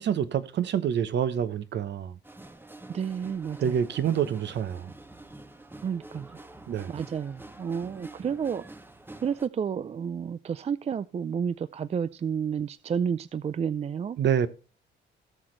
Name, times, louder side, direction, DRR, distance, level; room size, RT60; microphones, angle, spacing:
voice 1, 0.0-2.2 3.6-4.9 6.7-6.9 14.2-14.5, right 8 dB, 60° right, 0.9 m, -27 dB
sound 1, 2.2-9.5, right 2 dB, 10° right, 0.8 m, -47 dB
voice 2, 2.9-3.8 5.8-6.3 6.9-8.6 9.2-14.2, right 7 dB, 30° right, 0.4 m, -31 dB
17.5 x 6.1 x 3.2 m
cardioid pair, 90°, 20 cm